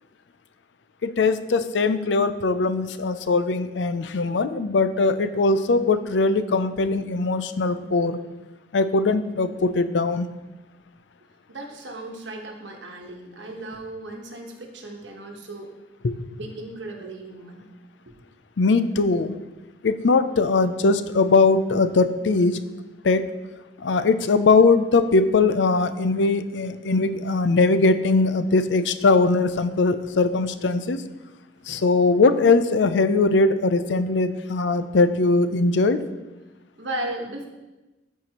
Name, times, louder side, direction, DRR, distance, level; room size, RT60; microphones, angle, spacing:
voice 1, 1.0-8.2 8.7-10.3 16.0-16.1 18.6-19.3 19.8-22.6 23.0-23.3 23.8-31.0 31.7-36.0, left 3 dB, 85° left, 11 dB, 0.5 m, -20 dB
voice 2, 11.5-15.7 16.4-17.6 18.1-18.2 31.7-31.8 36.8-37.5, right 1 dB, 90° right, 1 dB, 1.2 m, -36 dB
13.5 x 4.6 x 3.0 m, 1.1 s
head